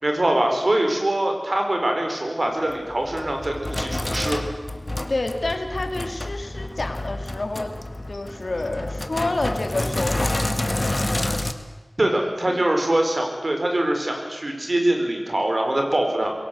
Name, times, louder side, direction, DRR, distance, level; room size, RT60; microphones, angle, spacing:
voice 1, 0.0-4.4 12.0-16.3, right 1 dB, 55° right, 3 dB, 4.9 m, -23 dB
Sink (filling or washing), 2.7-11.5, left 1 dB, 40° left, 1.7 m, -28 dB
voice 2, 5.1-7.7 8.1-10.3 12.1-12.7, left 2 dB, 75° left, 6 dB, 2.5 m, -29 dB
22.5 x 17.5 x 8.1 m, 1.3 s
wide cardioid pair, 50°, 0 cm